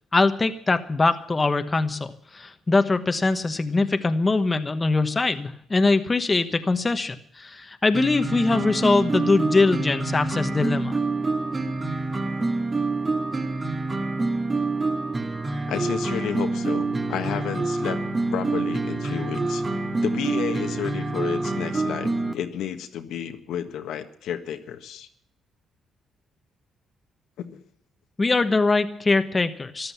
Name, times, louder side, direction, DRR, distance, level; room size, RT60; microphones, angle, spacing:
voice 1, 0.1-11.0 28.2-29.9, left 3 dB, 25° left, 8 dB, 1.2 m, -22 dB
sound 1, 7.9-22.3, right 3 dB, 30° right, 2.1 m, -26 dB
voice 2, 15.7-18.0 18.3-19.6 20.0-25.1 27.5-27.6, left 9 dB, 80° left, 7 dB, 1.5 m, -31 dB
14.0 x 12.0 x 7.1 m, 0.65 s
cardioid pair, 90°, 0 cm